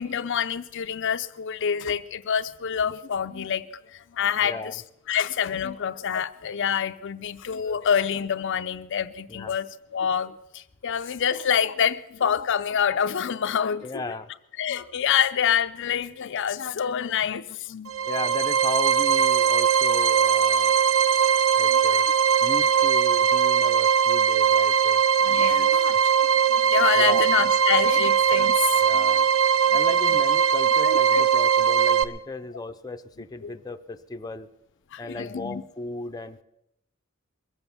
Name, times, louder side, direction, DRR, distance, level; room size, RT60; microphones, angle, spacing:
voice 1, 0.0-4.8 5.1-14.0 14.6-18.0 21.7-21.8 25.2-26.0 26.5-29.3 30.8-31.2 33.4-33.5 34.9-35.6, left 8 dB, 60° left, 0.5 m, -27 dB
voice 2, 4.4-4.8 9.3-9.6 13.8-14.3 18.1-20.8 21.2-22.1 22.4-25.0 25.6-25.8 26.9-27.3 28.8-29.3 29.7-34.5 35.0-36.4, left 2 dB, 20° left, 0.6 m, -36 dB
sound 1, 17.9-32.0, right 7 dB, 85° right, 0.7 m, -20 dB
21.5 x 8.0 x 7.0 m
head